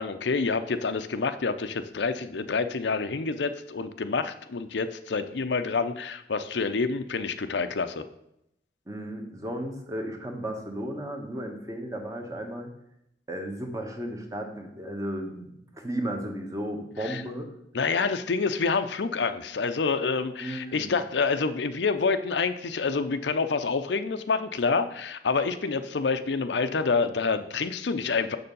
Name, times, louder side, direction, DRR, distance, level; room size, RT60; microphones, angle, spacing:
voice 1, 0.0-8.0 17.0-17.2 17.7-28.4, left 4 dB, 80° left, 10 dB, 0.6 m, -27 dB
voice 2, 8.9-12.7 13.3-17.5 20.4-20.9, right 1 dB, 20° right, 3 dB, 1.2 m, -34 dB
6.8 x 6.7 x 5.4 m, 0.79 s
head